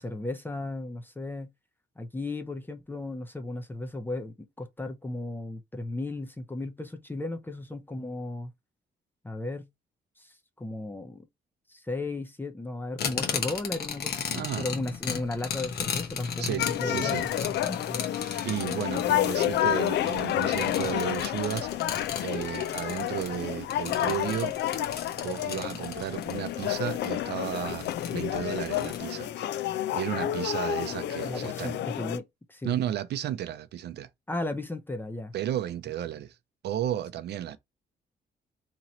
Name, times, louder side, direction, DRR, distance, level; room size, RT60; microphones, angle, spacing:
voice 1, 0.0-1.5 2.0-8.5 9.2-9.7 10.2-11.3 11.7-18.0 31.2-32.8 34.3-35.3, left 2 dB, 10° left, 0.6 m, -35 dB
sound 1, 13.0-29.0, left 7 dB, 65° left, 0.9 m, -36 dB
voice 2, 14.3-14.7 16.4-17.2 18.1-24.5 25.2-29.6 29.9-31.8 32.6-34.1 35.3-36.4 36.6-37.6, right 11 dB, 70° right, 0.5 m, -33 dB
sound 2, 16.6-32.2, left 12 dB, 80° left, 0.4 m, -30 dB
2.9 x 2.9 x 3.9 m
cardioid pair, 125°, 18 cm